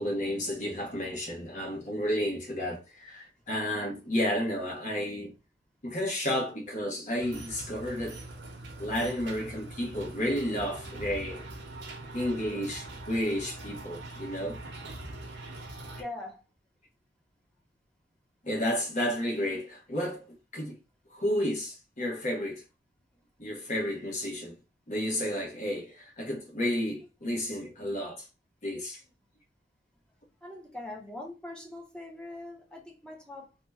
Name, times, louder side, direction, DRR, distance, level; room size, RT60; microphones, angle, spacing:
voice 1, 0.0-5.3 5.8-8.2 8.8-11.4 12.1-14.6 18.4-20.8 21.1-22.6 23.4-24.6 24.9-28.3 28.6-29.0, equal, 45° left, 1.0 m, -32 dB
sound 1, 7.2-16.0, right 2 dB, 80° right, 0.7 m, -43 dB
voice 2, 16.0-16.5 23.1-23.3 30.4-33.6, left 2 dB, 5° left, 0.7 m, -43 dB
2.8 x 2.1 x 3.4 m
head